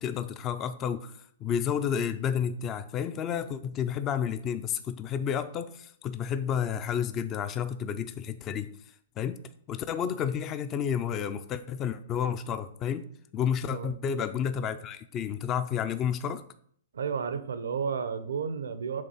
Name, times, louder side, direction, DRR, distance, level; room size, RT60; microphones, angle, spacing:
voice 1, 0.0-8.7 9.2-9.4 9.7-13.1 13.3-16.4, left 8 dB, 25° left, 12 dB, 0.4 m, -31 dB
voice 2, 16.9-19.0, right 6 dB, 90° right, 11 dB, 0.6 m, -32 dB
6.6 x 3.6 x 5.5 m, 0.63 s
hypercardioid pair, 140°, 0 cm